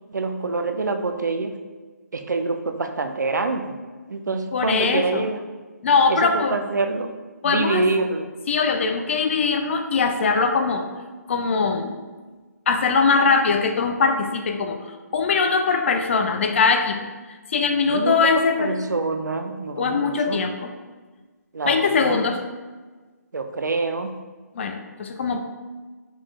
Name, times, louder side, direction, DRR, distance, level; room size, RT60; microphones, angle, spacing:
voice 1, 0.1-1.5 2.1-3.8 4.1-5.4 6.1-7.1 7.4-8.3 17.9-18.2 18.6-20.5 21.5-22.3 23.3-24.2, right 3 dB, 80° right, 6 dB, 0.4 m, -26 dB
voice 2, 4.5-5.2 5.8-6.6 7.4-7.8 8.5-10.9 11.3-11.9 12.7-14.8 15.1-17.0 17.5-18.7 19.8-20.7 21.6-22.4 24.6-25.4, left 5 dB, 45° left, 6 dB, 0.4 m, -21 dB
5.3 x 3.2 x 2.3 m, 1.4 s
figure-of-eight pair, 145°, 9 cm